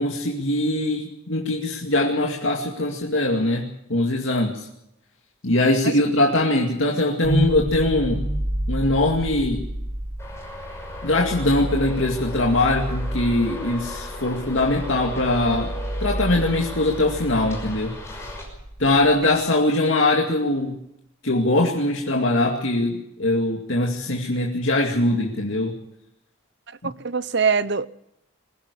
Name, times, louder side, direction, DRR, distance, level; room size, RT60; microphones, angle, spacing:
voice 1, 0.0-4.6 5.4-8.2 8.7-9.6 11.0-15.7 16.0-17.9 18.8-20.7 21.2-25.7 26.8-26.9, left 2 dB, 65° left, 2.3 m, -22 dB
sound 1, 7.2-19.3, right 1 dB, 25° right, 5.9 m, -30 dB
Traffic noise roadway noise, 10.2-18.4, left 1 dB, 15° left, 6.0 m, -38 dB
voice 2, 26.8-27.9, right 5 dB, 55° right, 0.7 m, -23 dB
21.5 x 16.0 x 8.3 m
head